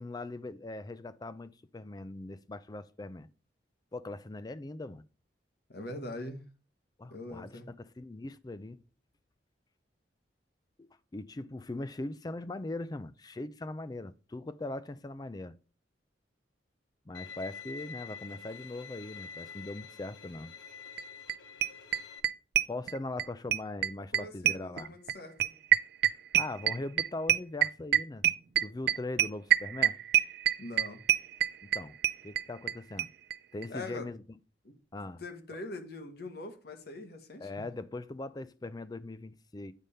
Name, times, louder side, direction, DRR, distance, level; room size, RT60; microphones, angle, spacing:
voice 1, 0.0-3.3 3.9-5.0 7.0-8.8 10.8-15.5 17.1-20.5 22.7-25.0 26.3-28.2 28.6-30.0 31.6-32.0 32.2-33.1 33.5-34.2 34.9-35.2 37.4-39.7, left 2 dB, 20° left, 0.4 m, -40 dB
voice 2, 5.7-6.4 7.1-7.7 24.1-25.6 30.6-31.0 33.7-34.1 34.6-34.8 35.2-37.7, left 2 dB, 55° left, 1.2 m, -42 dB
Bowed string instrument, 17.1-22.2, left 6 dB, 85° left, 0.9 m, -47 dB
sound 1, 21.0-21.1 21.3-21.4 21.6-23.3 23.5-32.7 33.0-33.1 33.3-33.4 33.6-33.7, right 11 dB, 60° right, 0.4 m, -26 dB
9.1 x 3.4 x 5.5 m
head